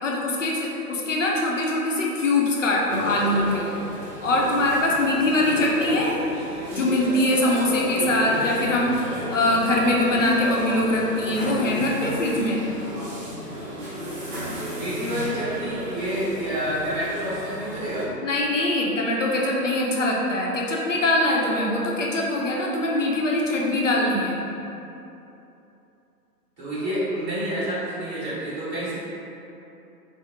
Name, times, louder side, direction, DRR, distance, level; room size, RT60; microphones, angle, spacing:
voice 1, 0.0-3.7 4.2-6.2 6.7-9.0 9.3-12.6 18.2-24.4, left 1 dB, 50° left, -3 dB, 0.6 m, -22 dB
sound 1, 2.9-18.1, equal, 50° right, 0.8 m, -33 dB
voice 2, 14.7-18.1 26.6-28.9, equal, 30° right, -12 dB, 1.1 m, -28 dB
4.3 x 2.0 x 2.6 m, 2.9 s
figure-of-eight pair, 135°, 48 cm